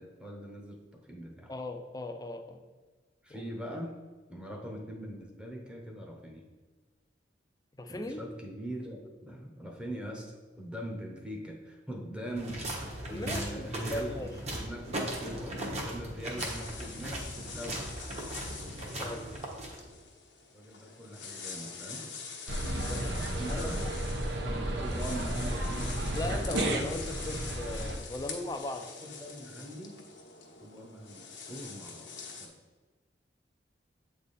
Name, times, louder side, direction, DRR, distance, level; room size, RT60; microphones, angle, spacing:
voice 1, 0.0-1.5 3.2-4.0 4.3-6.5 7.9-12.7 13.1-17.9 19.0-19.4 20.5-22.1 23.4-23.8 24.4-26.0 29.0-30.1 30.6-32.6, right 1 dB, 5° right, 0 dB, 0.9 m, -42 dB
voice 2, 1.5-2.6 3.3-3.4 7.8-8.2 13.1-14.3 19.0-19.2 22.8-23.2 23.5-23.7 26.2-28.9, left 2 dB, 20° left, 6 dB, 0.5 m, -38 dB
sound 1, 12.3-20.0, right 1 dB, 40° right, 1.1 m, -38 dB
sound 2, 16.4-32.5, left 5 dB, 80° left, 1.1 m, -45 dB
Baker Street - Tourists around Madame Toussauds, 22.5-28.0, right 1 dB, 75° right, 0.9 m, -33 dB
8.1 x 3.5 x 4.1 m, 1.4 s
head